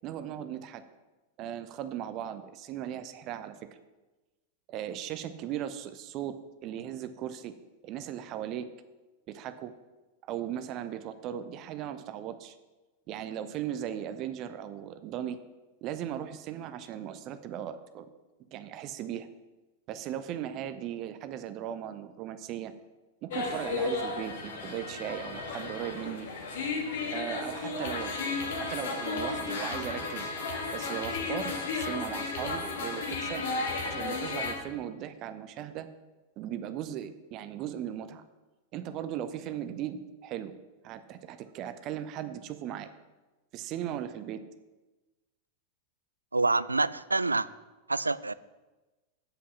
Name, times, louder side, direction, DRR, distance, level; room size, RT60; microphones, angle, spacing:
voice 1, 0.0-0.8 1.4-3.5 4.7-6.3 6.6-7.5 7.8-8.7 9.3-9.7 10.3-12.6 13.1-15.4 15.8-18.1 18.5-19.3 19.9-22.7 23.2-26.3 27.1-28.1 28.6-30.3 30.7-33.5 33.8-35.9 36.4-38.2 38.7-40.5 40.8-42.9 43.5-44.4, right 10 dB, 40° right, 11 dB, 0.7 m, -37 dB
sound 1, 23.3-34.5, left 3 dB, 60° left, 1.9 m, -34 dB
voice 2, 46.3-47.5 47.9-48.3, right 3 dB, 80° right, 17 dB, 0.3 m, -27 dB
8.4 x 7.9 x 6.1 m, 1.2 s
figure-of-eight pair, 90°, 0 cm